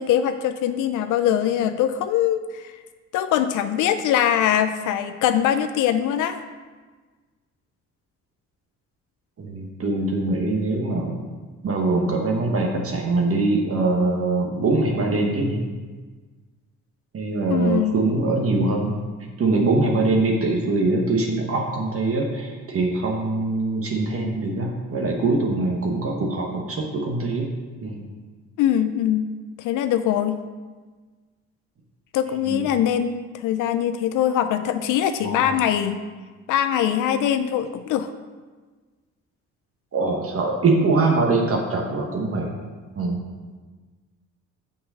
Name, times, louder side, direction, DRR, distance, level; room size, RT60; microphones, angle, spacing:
voice 1, 0.0-2.7 3.1-6.4 17.5-18.0 28.6-29.3 29.6-30.4 32.1-36.0 36.5-38.1, left 10 dB, 85° left, 9 dB, 0.5 m, -22 dB
voice 2, 9.4-11.2 11.6-15.6 17.1-19.0 19.4-27.5 27.8-28.0 32.5-32.7 35.2-35.5 39.9-42.5 42.9-43.2, right 3 dB, 50° right, 0 dB, 1.2 m, -23 dB
6.7 x 5.4 x 5.5 m, 1.4 s
cardioid pair, 90°, 30 cm